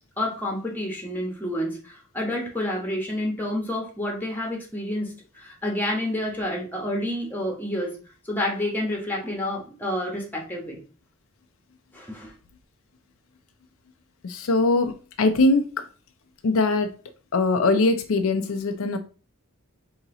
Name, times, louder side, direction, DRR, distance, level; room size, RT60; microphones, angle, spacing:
voice 1, 0.2-8.0 8.2-10.8 11.9-12.3, left 1 dB, 10° left, -1 dB, 1.2 m, -29 dB
voice 2, 14.2-15.8 16.4-16.9 17.3-19.0, left 2 dB, 65° left, 6 dB, 0.5 m, -22 dB
4.0 x 2.9 x 3.8 m, 0.36 s
head